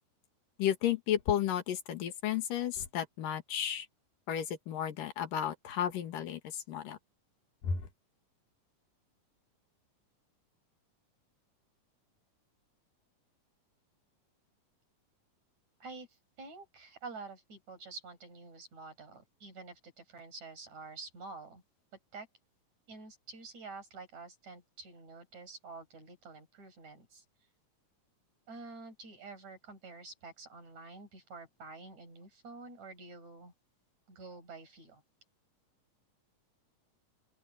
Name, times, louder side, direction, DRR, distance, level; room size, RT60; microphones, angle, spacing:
voice 1, 0.6-3.9 4.3-7.0 7.6-7.9, left 9 dB, 85° left, 3.4 m, -33 dB
voice 2, 15.8-21.6 22.1-22.3 22.9-27.2 28.5-33.5 34.1-35.0, right 3 dB, 55° right, 7.9 m, -48 dB
open air
omnidirectional pair, 3.8 m